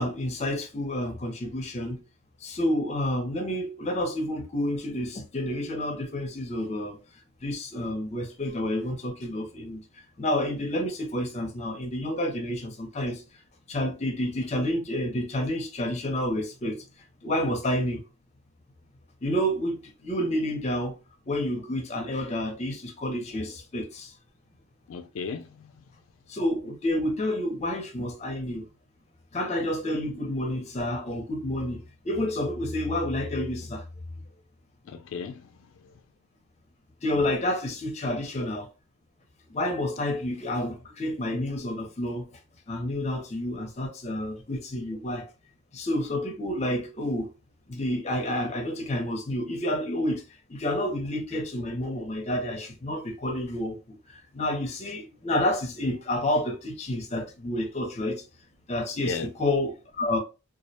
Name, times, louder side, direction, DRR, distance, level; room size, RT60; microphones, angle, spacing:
voice 1, 0.0-2.0 2.4-7.0 7.4-9.8 10.2-13.2 13.7-16.8 17.2-18.0 19.2-20.9 21.3-24.1 26.3-28.6 29.3-33.8 37.0-38.7 39.5-42.3 42.7-45.3 45.7-47.3 47.7-50.2 50.5-54.0 54.3-58.2 58.7-60.2, left 1 dB, 30° left, 0.5 m, -29 dB
voice 2, 24.9-25.8 34.8-35.9 59.0-59.3, left 5 dB, 85° left, 0.3 m, -36 dB
2.3 x 2.1 x 2.7 m
head